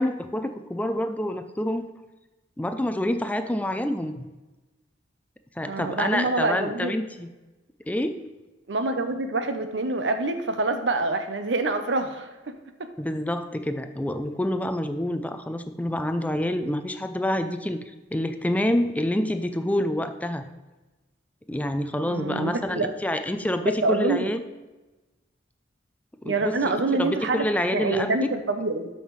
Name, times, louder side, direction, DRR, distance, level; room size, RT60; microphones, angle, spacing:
voice 1, 0.0-1.9 2.6-4.3 5.6-7.3 7.9-8.3 13.0-20.4 21.5-24.4 26.2-26.6 26.9-28.3, left 1 dB, 10° left, 9 dB, 0.3 m, -27 dB
voice 2, 5.6-6.9 8.7-12.3 22.0-22.9 23.8-24.3 26.2-27.4 27.7-28.9, right 3 dB, 75° right, 8 dB, 0.7 m, -26 dB
12.5 x 5.7 x 3.1 m, 1.1 s
head